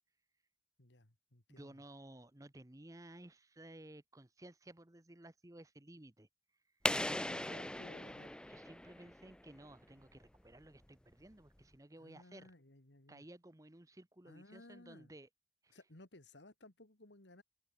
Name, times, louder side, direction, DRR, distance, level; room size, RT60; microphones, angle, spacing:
voice 1, 0.8-1.8 6.9-8.3 12.0-13.2 14.3-15.1 15.7-17.4, left 1 dB, 85° left, 2.8 m, -59 dB
voice 2, 1.5-6.3 8.5-12.5 13.1-15.3 15.6-15.8, right 1 dB, 20° right, 1.0 m, -56 dB
sound 1, 6.8-9.5, left 1 dB, 5° left, 0.5 m, -39 dB
open air
head